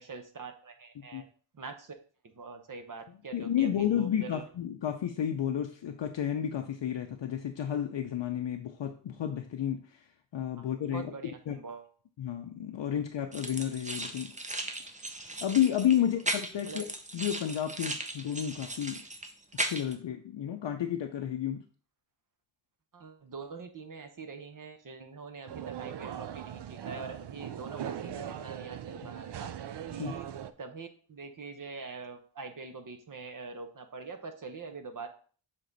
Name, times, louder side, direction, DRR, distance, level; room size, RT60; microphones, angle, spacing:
voice 1, 0.1-1.3 1.5-1.9 2.2-4.4 10.6-10.7 10.9-11.9 16.0-16.1 16.6-16.8 22.9-29.5 29.9-30.3 30.6-35.1, right 4 dB, 45° right, 7 dB, 0.8 m, -44 dB
voice 2, 3.3-10.0 10.3-11.1 11.5-11.6 12.2-14.3 15.4-16.9 17.1-19.0 19.6-21.6 30.0-30.1, left 10 dB, 70° left, 4 dB, 0.6 m, -31 dB
sound 1, 13.3-20.0, right 2 dB, 15° right, 0.6 m, -37 dB
sound 2, 25.5-30.5, right 10 dB, 60° right, 0.5 m, -40 dB
6.6 x 3.7 x 3.9 m, 0.41 s
wide cardioid pair, 140°, 46 cm